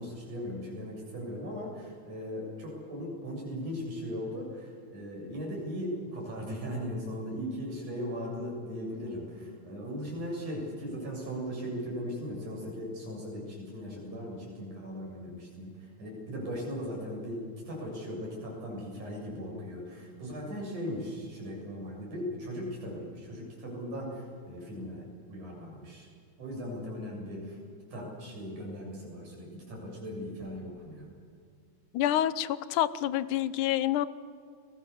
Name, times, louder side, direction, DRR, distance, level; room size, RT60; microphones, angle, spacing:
voice 1, 0.0-26.1 26.4-27.6 27.9-31.1, equal, 85° right, -2 dB, 9.1 m, -38 dB
voice 2, 31.9-34.1, left 12 dB, 90° left, 16 dB, 2.4 m, -27 dB
29.5 x 21.0 x 7.2 m, 2.2 s
omnidirectional pair, 3.4 m